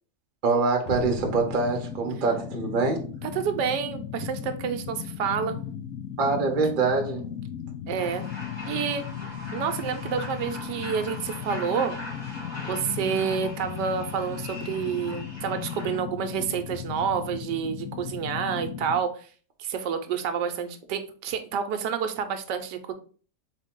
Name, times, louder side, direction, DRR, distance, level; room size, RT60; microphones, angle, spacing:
voice 1, 0.4-3.1 6.2-7.3, right 4 dB, 40° right, 0.9 m, -24 dB
sound 1, 0.9-19.0, left 9 dB, 70° left, 0.8 m, -36 dB
voice 2, 3.2-5.6 7.9-8.2 8.7-9.0 9.5-12.0 12.7-19.3 19.6-22.9, right 7 dB, 85° right, 1.3 m, -29 dB
sound 2, 8.0-16.0, left 1 dB, 30° left, 1.6 m, -41 dB
4.1 x 3.3 x 3.6 m
omnidirectional pair, 1.8 m